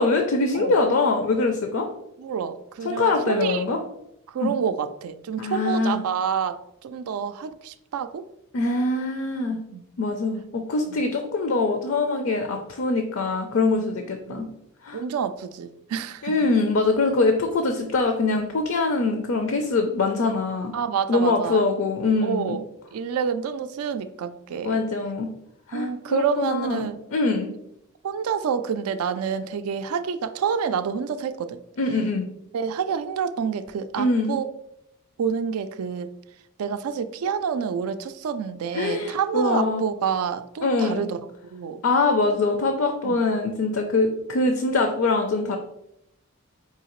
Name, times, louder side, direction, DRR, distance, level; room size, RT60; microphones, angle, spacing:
voice 1, 0.0-1.9 2.8-3.8 4.4-4.5 5.4-6.0 8.5-9.6 10.0-14.5 14.8-15.0 16.2-20.7 21.1-22.6 24.6-25.3 25.7-27.5 31.8-32.2 34.0-34.4 38.7-39.8 40.6-41.0 41.8-45.6, left 3 dB, 65° left, 5 dB, 0.4 m, -23 dB
voice 2, 2.2-3.6 4.3-8.2 9.5-9.9 10.9-11.0 14.2-14.5 14.9-16.3 20.7-21.6 22.2-22.6 22.9-24.8 25.7-27.0 28.0-31.6 32.5-34.5 35.2-36.1 36.6-41.2 41.5-41.8 43.0-43.2, right 7 dB, 85° right, 11 dB, 0.3 m, -28 dB
4.8 x 2.8 x 3.0 m, 0.78 s
head